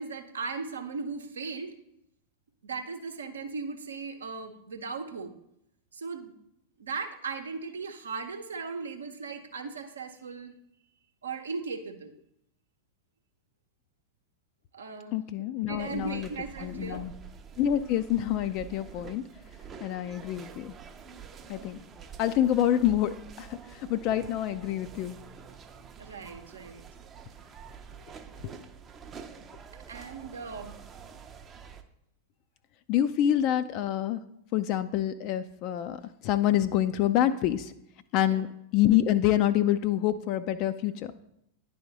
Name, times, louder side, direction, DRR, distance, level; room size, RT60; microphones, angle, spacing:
voice 1, 0.0-1.8 2.6-5.3 5.9-6.3 6.8-10.5 11.2-12.1 14.7-15.1 15.5-17.2 26.0-26.8 29.9-30.7 38.2-38.4, right 4 dB, 70° right, 7 dB, 0.7 m, -37 dB
voice 2, 15.1-16.3 16.6-17.1 17.6-19.2 19.8-20.7 21.5-21.8 22.2-25.1 32.9-34.2 34.5-37.7 38.1-38.5 38.7-41.1, left 11 dB, 40° left, 11 dB, 0.3 m, -27 dB
sound 1, 15.8-31.8, right 7 dB, 25° right, 0.5 m, -47 dB
10.0 x 3.5 x 3.9 m, 0.78 s
figure-of-eight pair, 90°, 0 cm